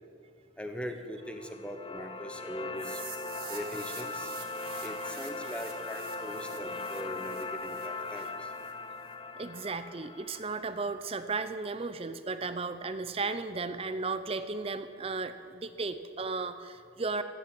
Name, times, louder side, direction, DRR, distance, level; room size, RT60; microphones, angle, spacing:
voice 1, 0.6-3.0 3.5-4.3 4.8-8.5, equal, 5° left, 6 dB, 1.0 m, -41 dB
sound 1, 1.2-11.3, left 3 dB, 25° left, 0.4 m, -40 dB
sound 2, 2.8-8.7, right 8 dB, 50° right, 2.4 m, -48 dB
voice 2, 9.4-17.2, right 3 dB, 30° right, 11 dB, 0.6 m, -35 dB
14.5 x 10.0 x 7.5 m, 2.4 s
head